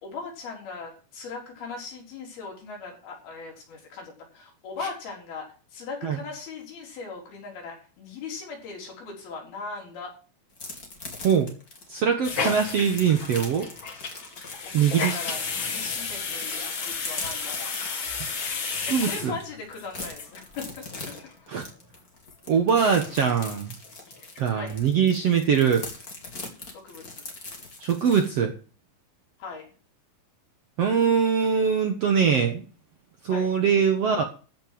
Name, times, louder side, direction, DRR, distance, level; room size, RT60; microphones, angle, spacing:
voice 1, 0.0-5.5 5.7-10.1 14.8-17.6 18.8-20.8 24.5-24.8 26.7-27.3 29.4-29.7 33.3-33.5, left 4 dB, 80° left, 0 dB, 5.8 m, -39 dB
sound 1, 10.5-15.4 15.7-18.5 19.0-19.1 19.4-28.3, left 3 dB, 25° left, 2.6 m, -41 dB
voice 2, 11.9-13.7 14.7-15.2 18.2-19.3 21.5-21.7 22.5-23.7 24.4-25.9 27.8-28.5 30.8-32.6 33.2-34.2, right 7 dB, 60° right, 5 dB, 1.6 m, -23 dB
sound 2, 12.2-19.8 20.2-20.3 20.5-20.6 20.9-21.3 21.6-21.7 22.3-22.4 22.6-23.2 23.5-23.6 23.9-24.4 24.7-24.9, left 5 dB, 40° left, 2.0 m, -32 dB
14.0 x 6.0 x 7.4 m, 0.37 s
omnidirectional pair, 4.3 m